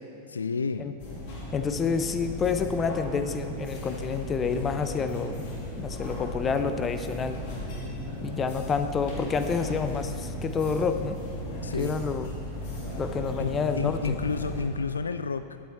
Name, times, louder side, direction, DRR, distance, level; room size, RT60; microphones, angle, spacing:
voice 1, 0.3-0.9 11.6-11.9 13.4-13.5 13.8-15.6, left 4 dB, 75° left, 11 dB, 0.3 m, -30 dB
sound 1, 1.0-14.6, equal, 45° left, 2.3 m, -36 dB
voice 2, 1.5-5.4 5.8-7.4 8.2-11.2 11.8-12.3 13.0-14.2, left 5 dB, 20° left, 9 dB, 0.7 m, -28 dB
14.0 x 8.9 x 4.2 m, 2.7 s
figure-of-eight pair, 90°, 0 cm